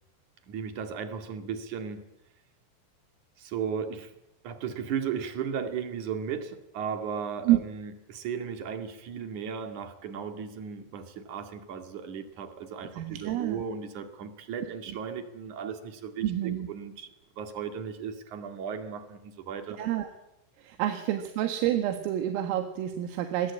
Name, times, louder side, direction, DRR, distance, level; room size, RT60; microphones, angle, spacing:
voice 1, 0.5-2.0 3.4-4.1 4.4-17.1 17.4-19.8, right 7 dB, 50° right, 7 dB, 2.8 m, -36 dB
voice 2, 12.9-13.6 16.2-16.7 19.8-20.1 20.6-23.5, right 12 dB, 85° right, 6 dB, 4.2 m, -28 dB
27.0 x 21.0 x 8.7 m, 0.88 s
omnidirectional pair, 5.8 m